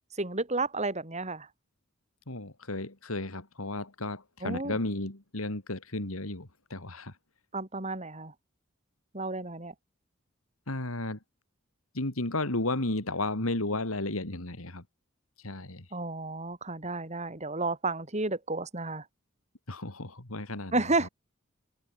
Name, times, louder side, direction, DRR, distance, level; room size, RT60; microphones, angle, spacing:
voice 1, 0.1-1.5 4.4-4.8 7.5-8.3 9.1-9.7 15.9-19.1 20.7-21.1, right 3 dB, 30° right, 3.7 m, -31 dB
voice 2, 2.3-7.2 10.7-11.2 11.9-14.8 15.4-15.9 19.7-20.7 21.0-21.1, left 2 dB, 85° left, 3.2 m, -33 dB
head